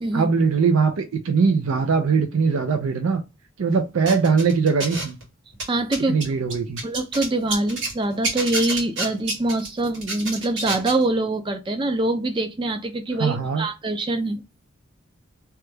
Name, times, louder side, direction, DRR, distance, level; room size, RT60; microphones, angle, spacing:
voice 1, 0.1-3.2 3.6-5.2 6.1-6.8 13.2-13.6, right 5 dB, 85° right, 0.4 m, -21 dB
sound 1, 4.1-5.2 5.5-7.9 8.2-11.0, right 2 dB, 65° right, 1.4 m, -29 dB
voice 2, 5.7-6.1 6.8-14.4, right 2 dB, 25° right, 0.4 m, -24 dB
3.0 x 2.2 x 3.2 m
head